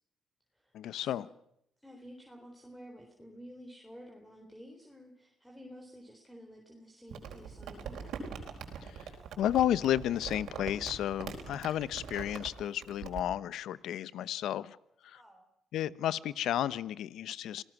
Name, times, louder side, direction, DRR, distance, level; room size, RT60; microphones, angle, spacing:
voice 1, 0.7-1.3 9.4-14.8 15.0-15.2 15.7-17.6, left 11 dB, 80° left, 18 dB, 0.8 m, -32 dB
voice 2, 1.8-8.3 15.1-15.5, equal, 5° left, 2 dB, 3.9 m, -51 dB
Crumpling crinkling, 7.1-13.2, right 6 dB, 75° right, 4.4 m, -43 dB
27.5 x 18.0 x 6.1 m, 0.74 s
cardioid pair, 90°, 0 cm